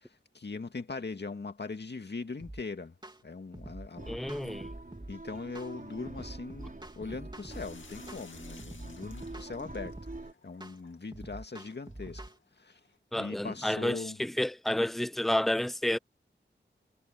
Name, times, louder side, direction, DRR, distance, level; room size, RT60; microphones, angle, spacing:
voice 1, 0.0-3.0 3.2-4.4 5.1-10.0 10.4-12.2 12.6-12.8 13.2-14.2, left 4 dB, 65° left, 2.1 m, -40 dB
sound 1, 2.4-2.6 3.0-3.2 3.5-5.1 5.5-5.7 6.1-7.7 8.1-8.3 8.6-10.2 10.6-10.8 11.1-12.4, right 1 dB, 20° right, 2.9 m, -45 dB
sound 2, 4.0-10.3, right 2 dB, 45° right, 5.3 m, -46 dB
voice 2, 4.1-4.7 13.1-16.0, left 1 dB, ahead, 0.5 m, -30 dB
sound 3, 7.5-13.0, left 4 dB, 85° left, 2.4 m, -57 dB
wide cardioid pair, 60°, 19 cm